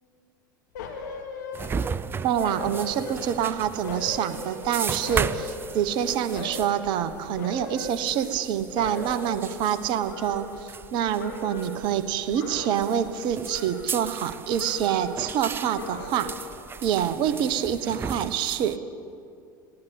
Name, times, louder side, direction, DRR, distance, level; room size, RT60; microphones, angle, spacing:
sound 1, 0.8-2.0 2.4-3.5 3.8-6.0 6.3-6.9 7.4-8.5 8.8-10.9 11.2-11.9 12.3-13.1 13.4-14.3 14.6-15.3 15.7-16.5 16.9-17.0, left 4 dB, 65° left, 2.7 m, -38 dB
sound 2, 1.5-18.8, right 6 dB, 20° right, 0.5 m, -36 dB
voice 1, 2.2-16.3 16.8-18.8, right 9 dB, 45° right, 12 dB, 1.2 m, -26 dB
20.0 x 16.5 x 8.2 m, 2.4 s
figure-of-eight pair, 75°, 11 cm